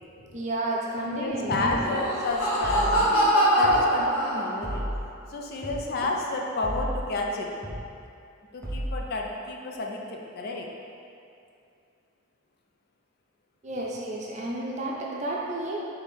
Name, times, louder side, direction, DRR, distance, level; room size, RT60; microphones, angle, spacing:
voice 1, 0.2-1.8 2.2-2.3 13.6-15.8, right 1 dB, 35° right, -3 dB, 0.6 m, -31 dB
voice 2, 1.1-4.8 5.3-7.5 8.5-10.7, left 2 dB, 45° left, 0 dB, 0.4 m, -30 dB
sound 1, 1.6-1.9 2.6-3.0 3.6-3.9 4.6-5.0 5.6-5.9 6.6-7.0 7.6-7.9 8.6-9.0, equal, 10° left, 0.7 m, -32 dB
Laughter, 1.7-4.8, equal, 75° left, 1.2 m, -23 dB
4.2 x 3.4 x 3.5 m, 2.5 s
head